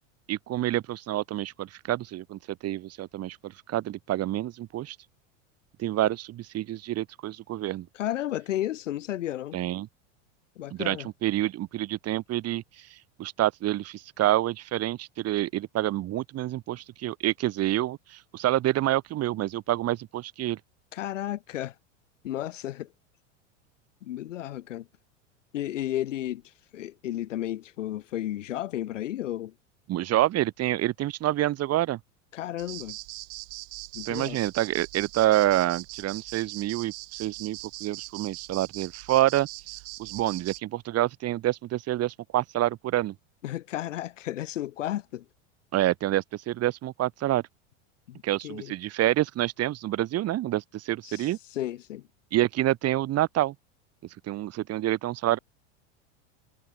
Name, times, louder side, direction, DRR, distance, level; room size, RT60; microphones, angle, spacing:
voice 1, 0.3-5.0 5.8-7.9 9.5-9.9 10.7-12.6 12.9-20.6 29.9-32.0 34.1-39.5 40.0-43.1 45.7-47.4 48.2-51.4 52.3-53.5 54.3-55.4, right 14 dB, 40° right, 4.8 m, -27 dB
voice 2, 7.9-9.6 10.6-11.1 20.9-21.7 22.2-22.9 24.0-24.9 25.5-26.4 26.7-29.5 32.3-33.0 33.9-34.4 43.4-45.2 48.1-48.7 51.0-51.3 51.5-52.0, left 13 dB, 90° left, 2.9 m, -33 dB
sound 1, 32.6-40.6, right 40 dB or more, 60° right, 5.7 m, -41 dB
supercardioid pair, 115°, 37 cm